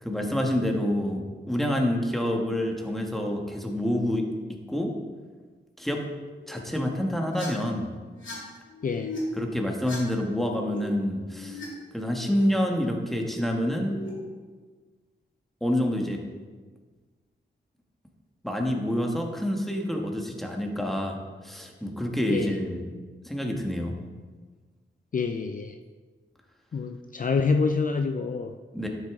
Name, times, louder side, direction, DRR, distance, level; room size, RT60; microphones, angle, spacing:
voice 1, 0.0-4.3 4.7-4.9 5.8-6.0 6.5-7.9 9.3-11.6 11.9-14.0 15.6-16.2 18.4-21.2 21.4-22.8 23.2-23.9 28.7-28.9, equal, ahead, 1 dB, 1.4 m, -27 dB
sound 1, 6.2-6.6 7.2-7.5 8.0-8.3 8.6-9.2 9.6-10.8 11.1-11.6 12.0-12.4 13.4-14.1, left 3 dB, 75° left, 2.9 m, -42 dB
voice 2, 8.8-9.1 22.3-22.6 25.1-25.8 26.7-28.5, left 4 dB, 45° left, 6 dB, 0.4 m, -27 dB
11.5 x 6.3 x 3.7 m, 1.4 s
wide cardioid pair, 85°, 20 cm